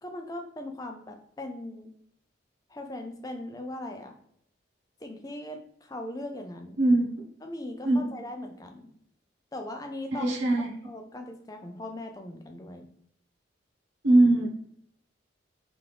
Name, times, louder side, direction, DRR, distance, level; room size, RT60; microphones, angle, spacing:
voice 1, 0.0-1.9 2.7-4.1 5.0-6.8 7.4-8.9 9.5-10.3 10.8-12.8, left 1 dB, 20° left, 5 dB, 0.4 m, -39 dB
voice 2, 6.8-7.2 7.8-8.1 10.1-10.9 14.0-14.5, right 2 dB, 90° right, -2 dB, 1.2 m, -22 dB
3.8 x 3.4 x 3.3 m, 0.71 s
head